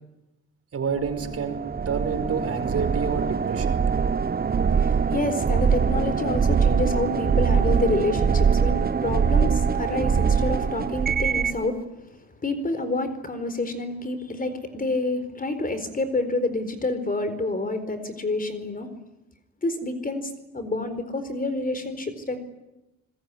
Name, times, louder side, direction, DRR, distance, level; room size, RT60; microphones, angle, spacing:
voice 1, 0.7-1.6 1.8-3.8, right 6 dB, 50° right, 7 dB, 4.9 m, -28 dB
sound 1, 1.0-11.6, right 6 dB, 30° right, 1.0 m, -23 dB
voice 2, 4.6-11.8 12.4-18.9 19.6-22.4, left 2 dB, 30° left, 11 dB, 4.4 m, -28 dB
26.0 x 21.5 x 10.0 m, 0.97 s
cardioid pair, 90°, 30 cm